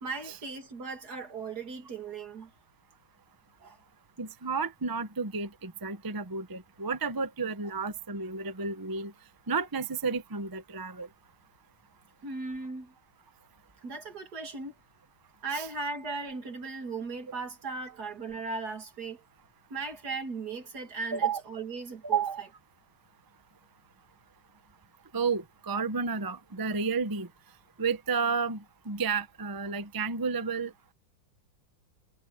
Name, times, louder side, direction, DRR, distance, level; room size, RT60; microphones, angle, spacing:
voice 1, 0.0-2.5 3.6-3.8 7.6-7.7 12.2-12.9 13.8-14.7 15.4-19.2 19.7-22.2, right 4 dB, 50° right, 3.0 m, -37 dB
voice 2, 4.2-9.1 9.5-11.1 15.5-15.7 21.1-21.4 22.1-22.5 25.1-27.3 27.8-28.6 28.9-30.7, right 5 dB, 30° right, 0.3 m, -31 dB
omnidirectional pair, 2.2 m